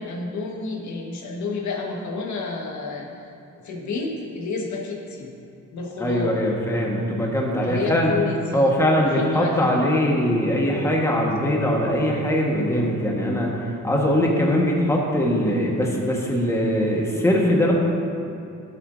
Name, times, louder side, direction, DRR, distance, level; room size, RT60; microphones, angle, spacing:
voice 1, 0.0-3.3 3.6-5.3 5.7-6.4 7.6-9.9, left 3 dB, 70° left, 0 dB, 1.6 m, -30 dB
voice 2, 6.0-8.1 8.5-17.7, equal, 10° left, -2 dB, 1.4 m, -21 dB
13.0 x 8.1 x 2.7 m, 2.6 s
cardioid pair, 90°, 30 cm